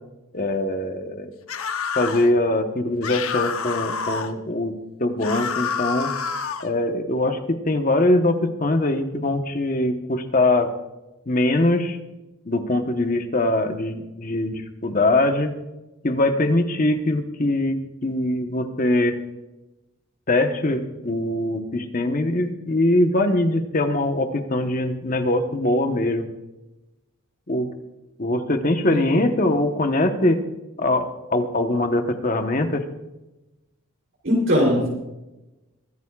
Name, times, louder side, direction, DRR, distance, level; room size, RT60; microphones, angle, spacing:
voice 1, 0.3-1.3 2.0-4.7 5.0-6.1 6.6-10.7 11.3-12.0 12.5-15.5 16.0-19.2 20.3-26.3 27.5-27.7 28.2-30.4 30.8-32.8, left 1 dB, 40° left, 6 dB, 1.1 m, -22 dB
sound 1, 1.5-2.3 3.0-4.3 5.2-6.7, left 6 dB, 80° left, 0.9 m, -28 dB
voice 2, 34.2-34.9, equal, 60° right, -2 dB, 3.3 m, -19 dB
23.0 x 14.0 x 2.4 m, 1.0 s
head